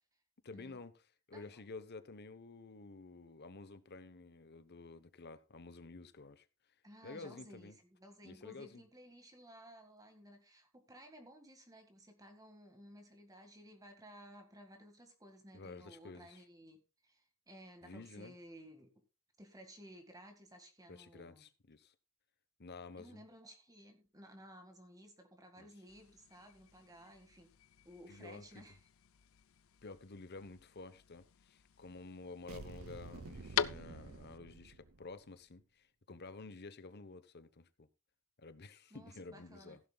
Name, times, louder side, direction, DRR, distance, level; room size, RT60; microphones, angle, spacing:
voice 1, 0.4-0.9 1.3-6.4 7.0-7.8 8.2-8.8 15.5-16.4 17.8-18.3 20.9-21.9 22.6-23.2 25.6-25.7 28.1-28.6 29.8-37.9 38.4-39.8, left 3 dB, 50° left, 1.0 m, -51 dB
voice 2, 1.3-1.6 6.8-18.9 19.4-21.5 23.0-27.6 27.8-28.8 38.9-39.8, equal, 15° right, 1.9 m, -56 dB
sound 1, 25.9-34.4, left 8 dB, 65° left, 0.6 m, -45 dB
sound 2, 32.5-35.2, right 3 dB, 65° right, 0.7 m, -50 dB
15.5 x 11.0 x 2.3 m
head